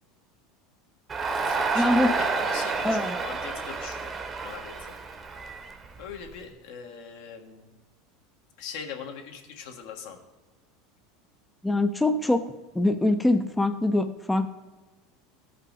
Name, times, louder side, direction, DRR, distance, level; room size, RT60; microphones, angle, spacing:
Crowd, 1.1-6.3, right 4 dB, 25° right, 0.8 m, -29 dB
voice 1, 1.2-4.1 4.4-5.0 6.0-7.7 8.6-10.2, left 6 dB, 70° left, 3 dB, 1.4 m, -41 dB
voice 2, 1.8-2.1 2.8-3.1 11.6-12.4 12.7-14.5, left 2 dB, 5° left, 7 dB, 0.5 m, -23 dB
14.5 x 5.5 x 4.0 m, 1.2 s
supercardioid pair, 125°, 0 cm